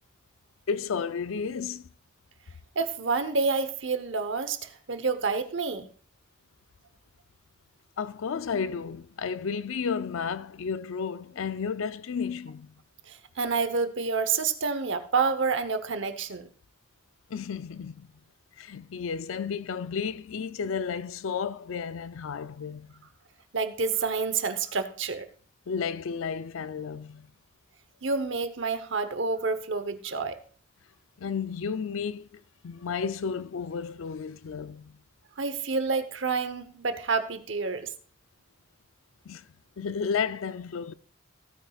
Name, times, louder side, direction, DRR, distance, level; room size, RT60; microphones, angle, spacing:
voice 1, 0.7-1.9 8.0-12.7 17.3-18.1 18.6-23.0 25.7-27.3 31.2-34.9 39.3-39.4 39.8-40.9, left 6 dB, 80° left, 0.4 m, -32 dB
voice 2, 2.8-5.9 13.1-16.5 23.5-25.3 28.0-30.4 35.4-37.9, right 4 dB, 65° right, 0.9 m, -28 dB
16.0 x 9.1 x 2.4 m
head